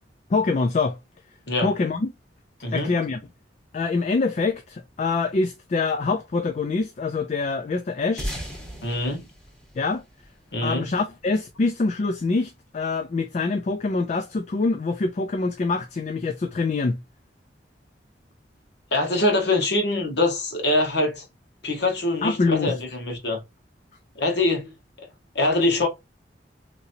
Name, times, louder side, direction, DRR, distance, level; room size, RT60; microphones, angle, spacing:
voice 1, 0.3-1.0 1.6-2.1 2.7-3.2 3.7-8.3 9.8-10.0 10.6-17.0 22.2-22.8, left 3 dB, 40° left, 0.4 m, -25 dB
voice 2, 2.6-2.9 8.8-9.3 10.5-10.9 18.9-21.2 21.6-23.4 24.1-24.7 25.3-25.9, left 2 dB, 70° left, 1.2 m, -23 dB
sound 1, 8.2-11.0, equal, 5° left, 1.0 m, -36 dB
3.0 x 2.8 x 2.6 m
head